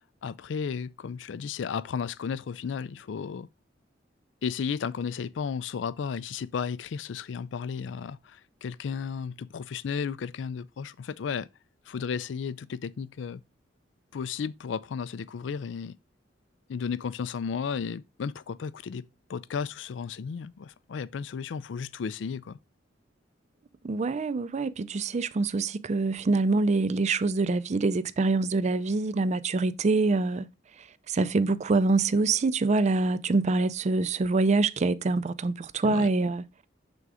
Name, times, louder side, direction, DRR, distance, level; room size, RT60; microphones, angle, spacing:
voice 1, 0.0-3.5 4.4-11.5 11.9-13.4 14.1-16.0 16.7-22.6 35.8-36.1, left 6 dB, 75° left, 0.4 m, -34 dB
voice 2, 23.8-30.5 31.1-36.4, right 3 dB, 40° right, 0.4 m, -25 dB
6.9 x 3.8 x 4.7 m
head